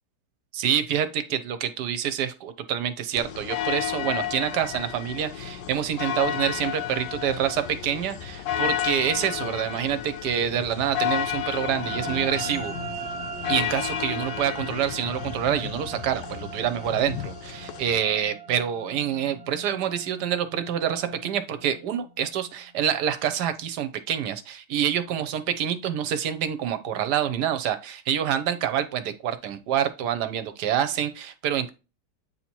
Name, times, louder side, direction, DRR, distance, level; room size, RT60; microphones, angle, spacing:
voice 1, 0.5-12.7 13.5-31.7, right 9 dB, 75° right, 11 dB, 1.2 m, -27 dB
sound 1, 3.2-18.0, left 11 dB, 85° left, 1.4 m, -32 dB
sound 2, 11.8-22.4, right 4 dB, 20° right, 0.6 m, -39 dB
8.3 x 2.8 x 4.4 m, 0.30 s
omnidirectional pair, 1.9 m